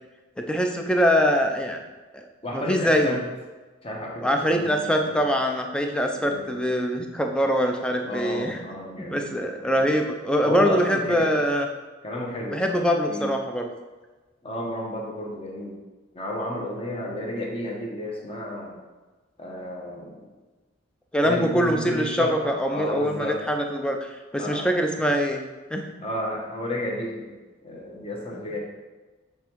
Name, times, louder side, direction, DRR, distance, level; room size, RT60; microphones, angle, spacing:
voice 1, 0.4-1.8 2.1-2.2 2.5-3.2 4.2-8.6 9.1-11.7 12.5-13.7 21.1-24.0 24.3-25.4 25.7-25.9, equal, 5° left, 3 dB, 0.5 m, -23 dB
voice 2, 2.4-3.2 3.8-5.2 6.1-6.6 8.0-9.4 9.6-9.9 10.4-11.4 12.0-12.8 13.1-13.3 14.4-15.8 16.1-18.8 19.4-20.2 21.2-23.4 24.4-24.7 26.0-27.4 27.6-28.6, left 1 dB, 30° left, -2 dB, 1.1 m, -32 dB
7.2 x 3.5 x 4.6 m, 1.2 s
head